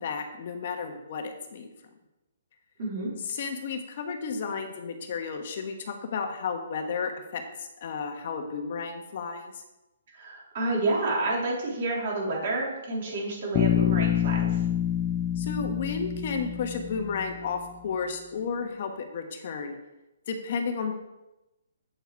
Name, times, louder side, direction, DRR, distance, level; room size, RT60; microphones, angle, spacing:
voice 1, 0.0-1.7 3.2-9.6 15.4-19.8 20.3-20.9, left 5 dB, 50° left, 5 dB, 1.2 m, -33 dB
voice 2, 2.8-3.1 10.1-14.6, right 2 dB, 45° right, -3 dB, 3.6 m, -29 dB
Bass guitar, 13.5-17.6, left 10 dB, 20° left, 0.4 m, -27 dB
8.9 x 7.2 x 4.6 m, 0.98 s
hypercardioid pair, 160°, 0 cm